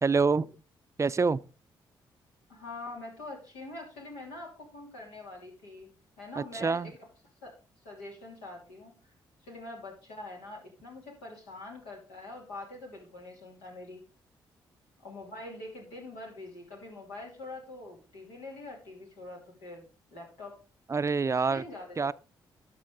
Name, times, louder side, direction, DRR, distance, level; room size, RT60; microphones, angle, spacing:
voice 1, 0.0-0.5 1.0-1.4 6.4-6.9 20.9-21.6 22.0-22.1, right 4 dB, 30° right, 0.4 m, -26 dB
voice 2, 2.5-7.1 7.4-7.5 7.8-8.9 9.4-14.0 15.0-19.9 20.1-20.6 21.3-21.9, left 2 dB, 85° left, 2.8 m, -44 dB
11.5 x 6.3 x 3.7 m
hypercardioid pair, 45°, 10 cm